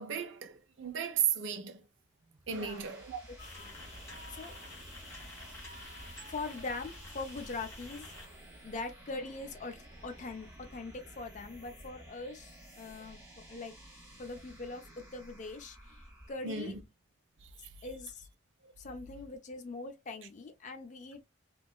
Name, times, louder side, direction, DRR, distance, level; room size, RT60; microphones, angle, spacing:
voice 1, 0.0-1.9 2.5-3.2 5.4-6.1 16.4-16.8 17.4-17.7 18.6-18.7, right 7 dB, 70° right, 0.4 m, -36 dB
sound 1, 2.2-16.7, right 1 dB, 15° right, 0.9 m, -54 dB
voice 2, 2.5-2.8 3.3-3.8 4.0-4.6 6.3-8.1 8.6-13.7 14.2-16.0 16.3-16.8 17.8-18.3 18.8-21.2, left 3 dB, 35° left, 0.4 m, -42 dB
sound 2, 3.4-8.2, left 1 dB, 15° left, 1.5 m, -48 dB
2.8 x 2.2 x 2.3 m
head